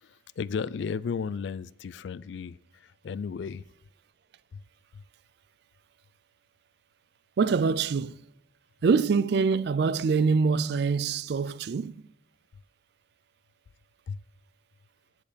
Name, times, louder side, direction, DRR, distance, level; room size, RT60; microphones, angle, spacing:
voice 1, 0.0-3.6 4.5-4.6 4.9-5.0 14.1-14.2, left 6 dB, 70° left, 0.3 m, -34 dB
voice 2, 7.4-8.2 8.8-12.0, right 5 dB, 60° right, 0.3 m, -24 dB
13.5 x 4.8 x 5.1 m
head